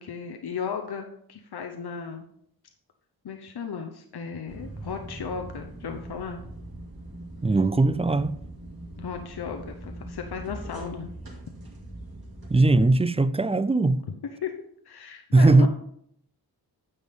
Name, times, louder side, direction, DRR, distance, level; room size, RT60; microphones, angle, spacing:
voice 1, 0.0-2.2 3.2-6.4 9.0-11.1 14.4-14.5 14.9-15.7, left 6 dB, 75° left, 0.9 m, -35 dB
sound 1, 4.5-12.8, right 1 dB, 65° right, 2.6 m, -41 dB
voice 2, 7.4-8.4 12.5-14.0 15.3-15.7, right 2 dB, 15° right, 0.3 m, -19 dB
9.7 x 7.2 x 3.6 m
wide cardioid pair, 90°, 39 cm